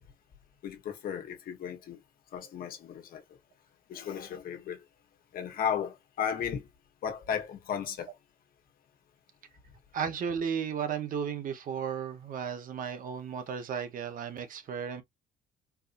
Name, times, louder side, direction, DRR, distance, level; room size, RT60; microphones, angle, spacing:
voice 1, 0.6-2.0 2.3-3.2 3.9-4.8 5.3-6.6 7.0-8.1, left 8 dB, 60° left, 1.4 m, -34 dB
voice 2, 9.9-15.0, right 7 dB, 55° right, 1.0 m, -34 dB
4.7 x 2.7 x 2.6 m
cardioid pair, 110°, 17 cm